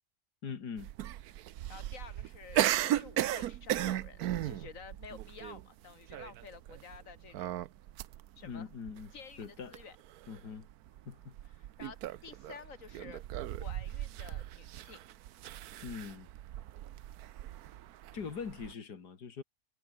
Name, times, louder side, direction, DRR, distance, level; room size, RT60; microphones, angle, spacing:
voice 1, 0.4-0.9 8.4-9.1 9.4-9.7 10.3-10.7 11.1-11.4 15.8-16.3 18.1-19.4, left 6 dB, 90° left, 2.6 m, -42 dB
sound 1, 0.8-18.7, right 13 dB, 75° right, 1.2 m, -37 dB
voice 2, 1.7-7.6 8.4-8.7 9.1-10.0 11.8-13.2 13.6-15.0, left 6 dB, 55° left, 2.2 m, -51 dB
omnidirectional pair, 1.7 m